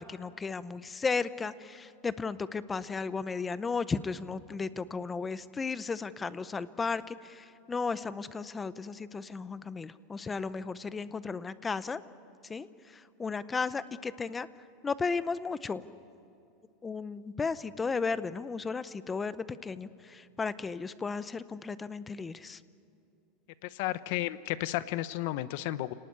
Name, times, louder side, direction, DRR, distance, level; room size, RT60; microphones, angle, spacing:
voice 1, 0.0-12.0 12.5-14.5 14.8-15.8 16.8-22.6, left 4 dB, 15° left, 15 dB, 0.6 m, -34 dB
voice 2, 23.6-25.9, left 15 dB, 55° left, 14 dB, 0.9 m, -33 dB
29.0 x 19.0 x 9.7 m, 2.6 s
supercardioid pair, 155°, 0 cm